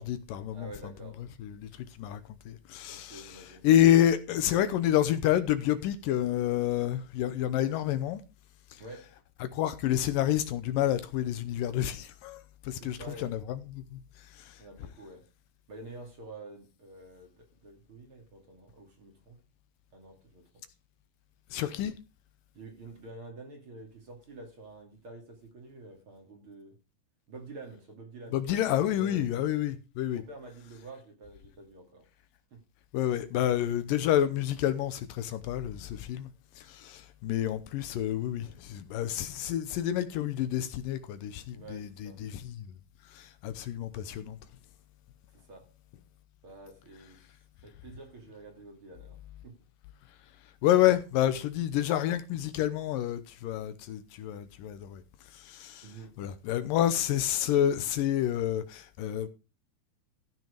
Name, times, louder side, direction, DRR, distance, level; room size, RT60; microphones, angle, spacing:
voice 1, 0.0-0.7 1.4-8.2 8.7-8.8 9.4-14.6 21.5-21.9 28.3-30.2 32.9-36.3 36.6-42.7 43.1-44.4 50.6-55.0 55.3-55.9 56.2-59.3, left 11 dB, 80° left, 2.4 m, -29 dB
voice 2, 0.5-1.2 2.9-4.0 8.8-9.2 12.8-13.4 14.6-15.3 15.7-19.4 19.9-20.6 22.5-26.8 27.3-28.6 29.0-29.3 30.1-32.1 32.5-32.6 41.5-42.2 45.3-45.7 46.4-47.2 47.6-49.6 55.8-56.2, right 2 dB, 40° right, 2.9 m, -48 dB
15.0 x 6.2 x 5.1 m
omnidirectional pair, 4.2 m